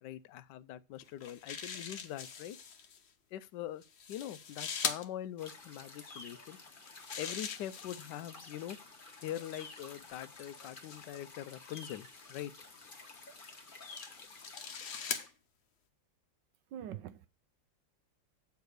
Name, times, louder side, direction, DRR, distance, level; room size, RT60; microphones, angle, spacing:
voice 1, 0.0-2.6 3.3-3.8 4.1-6.6 7.2-8.8 9.2-12.5, left 12 dB, 75° left, 1.1 m, -43 dB
sound 1, 1.0-3.0 3.8-5.0 6.7-8.3 9.1-11.3 12.1-12.5 13.3-15.3, left 6 dB, 50° left, 0.8 m, -42 dB
sound 2, 5.4-15.3, left 3 dB, 30° left, 1.2 m, -52 dB
voice 2, 16.7-17.3, right 10 dB, 75° right, 1.3 m, -43 dB
8.1 x 4.7 x 6.5 m
omnidirectional pair, 2.0 m